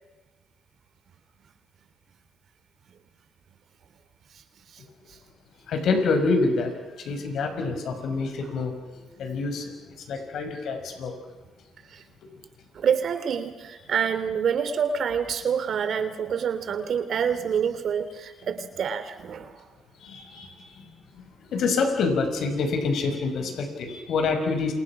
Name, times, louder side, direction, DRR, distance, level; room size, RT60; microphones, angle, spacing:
voice 1, 5.7-6.7 7.0-8.7 9.2-9.7 10.1-11.1 20.0-20.8 21.5-24.7, left 4 dB, 70° left, 5 dB, 5.9 m, -26 dB
voice 2, 12.7-19.6, right 7 dB, 60° right, 9 dB, 3.3 m, -27 dB
29.5 x 27.0 x 6.1 m, 1.2 s
cardioid pair, 90°, 0 cm